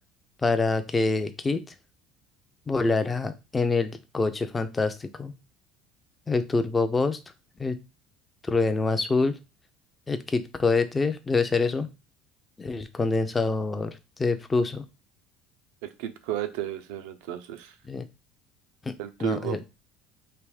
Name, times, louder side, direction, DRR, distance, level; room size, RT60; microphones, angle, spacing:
voice 1, 0.4-1.6 2.7-5.3 6.3-7.2 7.6-7.8 8.5-9.4 10.1-11.9 12.6-14.8 17.9-18.1 18.9-19.0 19.2-19.6, left 3 dB, 10° left, 9 dB, 0.4 m, -26 dB
voice 2, 15.8-17.7 19.0-19.6, right 11 dB, 85° right, 10 dB, 0.6 m, -33 dB
3.4 x 3.0 x 4.8 m, 0.27 s
cardioid pair, 175°, 0 cm